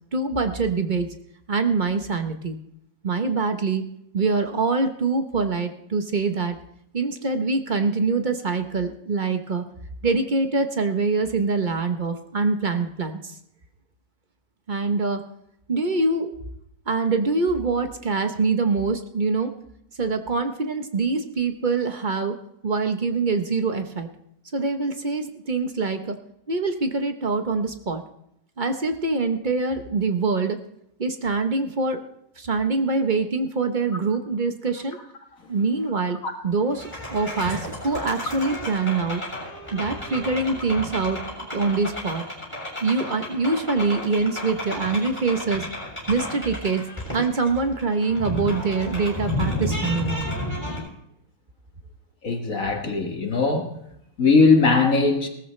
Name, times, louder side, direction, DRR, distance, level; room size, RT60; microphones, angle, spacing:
voice 1, 0.1-1.1 1.5-2.6 3.0-3.8 4.1-6.6 6.9-9.6 10.0-13.3 14.7-15.2 15.7-16.3 16.9-19.5 20.0-22.4 22.6-24.1 24.5-26.2 26.5-28.0 28.6-30.6 31.0-32.0 32.4-35.0 35.5-36.2 36.4-39.2 39.7-41.2 41.5-42.2 42.8-45.7 46.1-46.8 47.1-50.3, right 4 dB, 35° right, 0.8 m, -24 dB
sound 1, 36.7-50.8, left 1 dB, 5° left, 6.7 m, -32 dB
voice 2, 52.2-53.7 54.2-55.3, left 4 dB, 50° left, 1.8 m, -19 dB
18.0 x 14.0 x 3.2 m
omnidirectional pair, 1.9 m